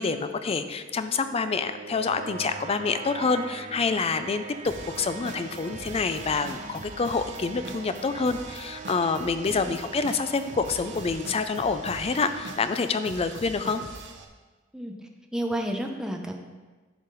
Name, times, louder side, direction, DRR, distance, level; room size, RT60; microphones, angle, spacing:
voice 1, 0.0-13.8, left 4 dB, 30° left, 10 dB, 0.4 m, -27 dB
sound 1, 0.6-13.7, right 5 dB, 40° right, 0.5 m, -42 dB
sound 2, 4.7-14.3, right 2 dB, 65° right, 0.8 m, -43 dB
voice 2, 15.3-16.3, right 1 dB, 5° right, 2 dB, 0.7 m, -31 dB
10.5 x 5.6 x 4.1 m, 1.3 s
head